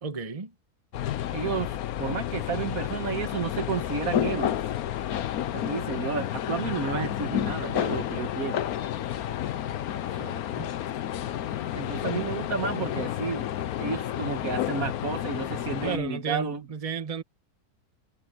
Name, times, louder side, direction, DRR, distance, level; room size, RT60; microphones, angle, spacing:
voice 1, 0.0-0.5 10.1-10.7 15.8-17.2, right 5 dB, 25° right, 1.2 m, -34 dB
sound 1, 0.9-16.0, left 11 dB, 70° left, 1.2 m, -31 dB
voice 2, 1.3-4.6 5.5-8.6 11.7-13.5 13.8-16.6, right 5 dB, 60° right, 1.7 m, -31 dB
sound 2, 1.4-16.1, left 1 dB, 20° left, 4.2 m, -52 dB
omnidirectional pair, 1.7 m